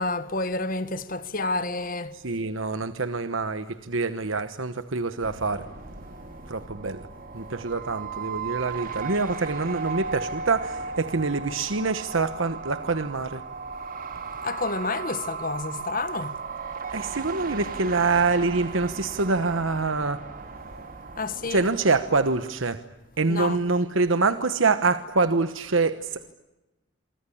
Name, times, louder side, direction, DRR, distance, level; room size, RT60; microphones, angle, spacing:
voice 1, 0.0-2.2 14.4-16.4 21.2-21.6 23.3-23.6, left 3 dB, 45° left, 1.5 m, -29 dB
voice 2, 2.1-5.7 6.5-7.1 7.3-13.4 16.9-20.2 21.5-22.8 23.2-26.3, right 3 dB, 75° right, 1.1 m, -25 dB
sound 1, 5.2-22.5, right 5 dB, 45° right, 2.5 m, -36 dB
27.5 x 24.5 x 8.6 m
head